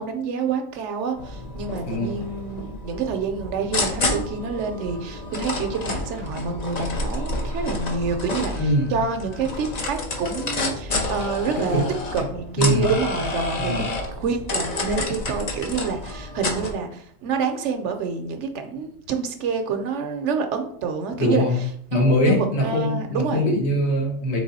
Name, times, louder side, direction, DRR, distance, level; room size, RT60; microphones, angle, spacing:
voice 1, 0.0-11.8 12.1-21.7 22.2-23.5, right 5 dB, 70° right, 6 dB, 0.9 m, -28 dB
sound 1, 1.2-16.7, left 2 dB, 40° left, 0.6 m, -29 dB
voice 2, 1.9-2.2 8.5-8.9 11.7-11.8 12.1-12.2 12.6-12.9 13.6-13.9 21.2-21.5 21.9-24.4, left 1 dB, 60° left, 0 dB, 1.3 m, -22 dB
4.0 x 3.3 x 4.0 m, 0.65 s
omnidirectional pair, 1.3 m